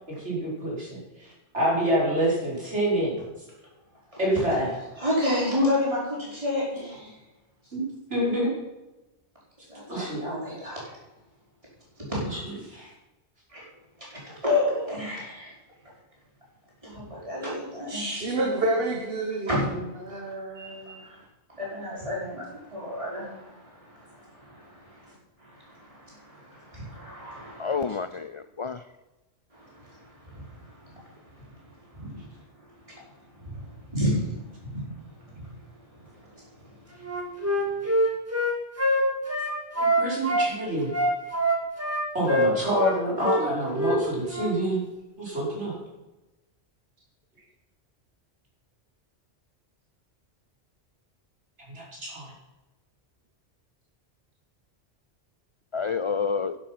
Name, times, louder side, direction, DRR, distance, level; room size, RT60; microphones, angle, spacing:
voice 1, 0.1-3.2 4.2-4.8 7.7-8.5 9.9-10.2 12.2-12.8 37.8-37.9 39.8-40.9 42.1-44.8 45.2-45.8 51.7-52.3, equal, 85° right, -5 dB, 5.5 m, -27 dB
voice 2, 5.0-7.1 9.7-11.0 12.1-12.2 13.5-13.6 14.0-15.5 16.8-18.1 19.5-19.6 20.6-21.0 21.5-25.1 25.4-27.8 29.5-32.4 32.9-33.1 33.4-34.8 35.3-35.5 36.0-36.8 37.6-37.7, left 1 dB, 30° right, -6 dB, 5.4 m, -31 dB
voice 3, 17.9-19.6 20.0-21.2, right 2 dB, 55° right, 1 dB, 1.8 m, -29 dB
voice 4, 27.6-28.8 55.7-56.6, left 5 dB, 55° left, 12 dB, 0.3 m, -29 dB
Wind instrument woodwind instrument, 37.0-40.5 40.9-43.0 43.2-43.4 43.7-44.0 44.3-44.5, equal, 15° right, 2.1 m, -24 dB
12.0 x 10.5 x 6.0 m, 1.0 s
omnidirectional pair, 1.1 m